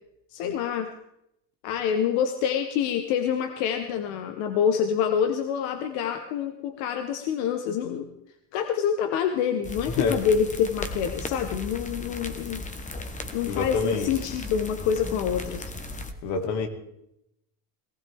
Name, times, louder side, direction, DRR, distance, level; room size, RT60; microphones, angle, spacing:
voice 1, 0.3-0.9 1.6-8.1 8.5-12.6 13.0-13.1 13.3-15.6, left 8 dB, 75° left, 7 dB, 1.2 m, -26 dB
sound 1, 9.6-16.1, left 2 dB, 15° left, 1.1 m, -36 dB
voice 2, 13.5-14.1 16.2-16.7, left 4 dB, 90° left, 5 dB, 2.2 m, -26 dB
18.5 x 15.5 x 3.5 m, 0.82 s
cardioid pair, 120°, 48 cm